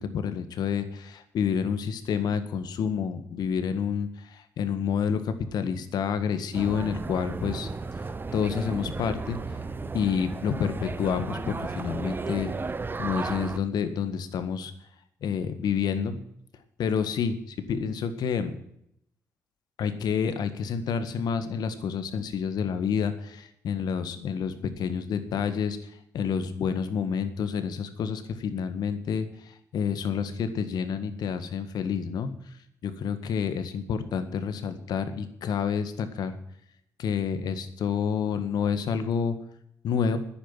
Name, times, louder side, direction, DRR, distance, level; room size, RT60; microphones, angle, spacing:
voice 1, 0.0-7.7 8.3-9.4 9.9-12.5 13.0-14.7 15.2-16.2 16.8-18.6 19.8-25.8 26.1-32.3 32.8-36.4 37.0-39.4 39.8-40.2, left 7 dB, 75° left, 10 dB, 1.7 m, -29 dB
sound 1, 6.5-13.6, right 4 dB, 30° right, 0.9 m, -34 dB
10.0 x 8.8 x 9.7 m, 0.73 s
cardioid pair, 65°, 7 cm